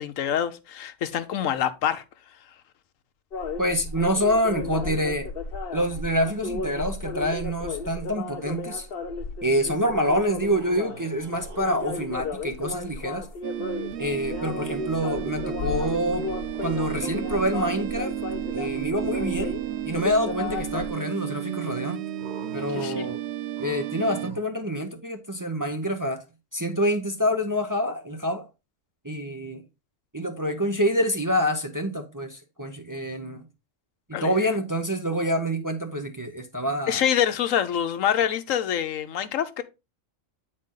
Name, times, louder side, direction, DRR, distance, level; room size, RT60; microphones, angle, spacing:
voice 1, 0.0-2.0 22.7-23.1 34.1-34.3 36.9-39.6, left 9 dB, 90° left, 1.1 m, -26 dB
sound 1, 3.3-20.9, left 3 dB, 50° left, 1.0 m, -34 dB
voice 2, 3.6-5.3 5.7-8.9 9.4-13.3 14.0-16.3 16.6-18.1 18.5-19.6 19.8-22.0 22.5-23.2 23.6-26.2 26.5-28.5 29.0-29.6 30.1-33.4 34.1-37.0, equal, 20° right, 0.6 m, -26 dB
sound 2, 10.4-12.4 13.9-15.3 15.8-17.4 18.9-20.0 22.2-24.4, right 4 dB, 40° right, 1.2 m, -46 dB
sound 3, 13.4-24.3, right 12 dB, 65° right, 0.8 m, -33 dB
8.9 x 4.3 x 3.7 m
omnidirectional pair, 1.3 m